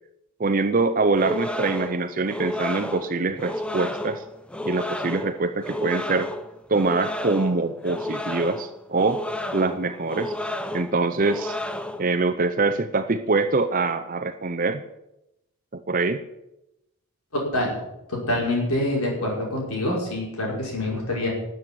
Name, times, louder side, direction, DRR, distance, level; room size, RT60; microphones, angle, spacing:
voice 1, 0.4-4.2 4.6-6.3 6.7-9.2 9.5-10.3 10.7-11.6 12.0-14.8 15.7-16.2, right 3 dB, 40° right, 9 dB, 0.7 m, -24 dB
sound 1, 1.1-12.2, left 1 dB, 5° left, 0.6 m, -32 dB
voice 2, 17.3-17.8 18.1-21.3, left 1 dB, 90° left, -1 dB, 5.6 m, -26 dB
13.0 x 7.9 x 9.1 m, 0.88 s
head